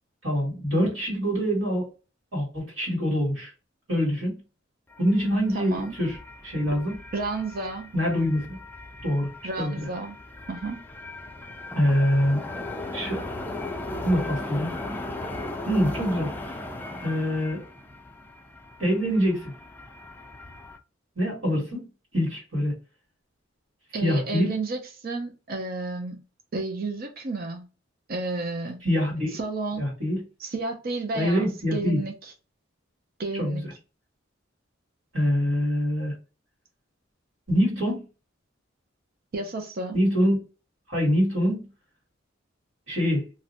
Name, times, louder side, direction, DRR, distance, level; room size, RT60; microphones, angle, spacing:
voice 1, 0.2-1.9 2.3-3.5 3.9-4.4 5.0-6.2 6.4-7.0 7.9-8.6 9.0-9.3 9.6-9.9 11.7-12.4 12.9-13.2 14.0-14.7 15.7-16.5 17.0-17.6 18.8-19.5 21.1-21.8 22.1-22.7 24.0-24.6 28.8-29.4 29.8-30.2 31.1-32.0 33.4-33.6 35.1-36.1 37.5-38.0 39.9-40.4 40.9-41.7 42.9-43.2, equal, 70° right, 1.6 m, -24 dB
sound 1, 4.9-20.8, left 2 dB, 10° left, 0.4 m, -38 dB
voice 2, 5.5-6.0 7.1-7.9 9.4-10.2 10.5-10.8 23.9-26.2 26.5-27.7 28.1-28.8 29.3-29.9 30.4-32.1 33.2-33.7 39.3-40.0, right 3 dB, 50° right, 0.5 m, -31 dB
2.5 x 2.1 x 3.9 m
head